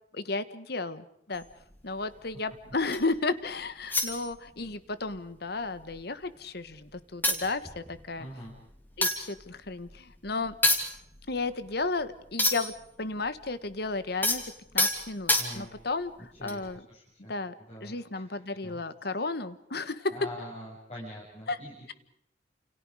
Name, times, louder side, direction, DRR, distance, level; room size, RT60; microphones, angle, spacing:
voice 1, 0.1-1.4 1.8-8.3 9.0-10.5 11.3-12.7 13.0-14.4 14.7-16.1 16.4-16.8 17.3-17.5 17.8-20.1 21.5-21.6, left 3 dB, 60° left, 13 dB, 1.4 m, -33 dB
sound 1, 1.3-3.2 3.9-4.8 5.1-5.3 5.6-6.5 6.9-7.0 7.2-12.9 13.1-15.9 16.4-16.7, left 2 dB, 10° left, 3.0 m, -30 dB
voice 2, 8.2-8.5 15.3-15.9 16.2-17.3 17.7-18.8 20.1-21.9, equal, 35° left, -5 dB, 6.8 m, -44 dB
30.0 x 28.5 x 5.0 m, 0.74 s
head